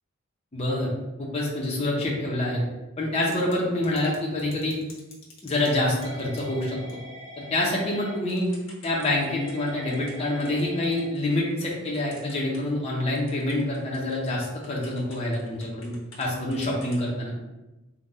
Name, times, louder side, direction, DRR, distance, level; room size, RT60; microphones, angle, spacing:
voice 1, 0.5-0.9 1.2-2.6 3.0-4.8 5.4-6.8 7.4-8.5 8.8-17.3, left 1 dB, 30° left, -4 dB, 0.7 m, -26 dB
Typing / Telephone, 3.1-3.5 3.8-12.9 13.1-16.3 16.5-17.1, left 1 dB, 80° left, 1.0 m, -44 dB
3.7 x 2.3 x 4.0 m, 1.0 s
head